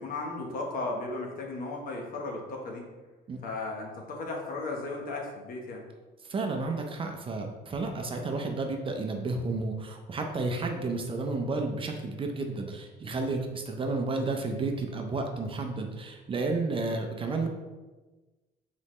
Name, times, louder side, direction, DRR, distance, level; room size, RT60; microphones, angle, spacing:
voice 1, 0.0-2.8 3.4-5.8, left 2 dB, 55° left, 0 dB, 1.1 m, -35 dB
voice 2, 6.3-17.5, right 3 dB, 30° right, 3 dB, 0.6 m, -31 dB
4.0 x 3.9 x 3.1 m, 1.2 s
cardioid pair, 110°, 17 cm